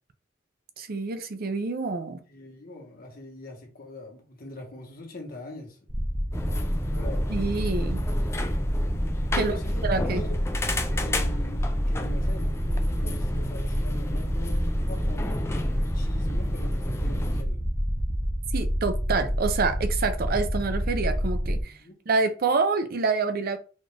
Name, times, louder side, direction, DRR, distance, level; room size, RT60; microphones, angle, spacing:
voice 1, 0.8-2.2 7.3-8.0 9.3-9.6 9.8-10.2 18.5-21.8 22.1-23.6, right 4 dB, 55° right, 0.5 m, -27 dB
voice 2, 2.3-5.8 6.9-7.2 9.3-10.4 10.8-12.5 12.9-17.6 21.8-22.0, left 1 dB, 50° left, 1.2 m, -42 dB
sound 1, 5.9-21.6, equal, 15° right, 0.6 m, -28 dB
sound 2, 6.3-17.4, left 2 dB, 15° left, 0.3 m, -34 dB
4.2 x 2.5 x 3.2 m
head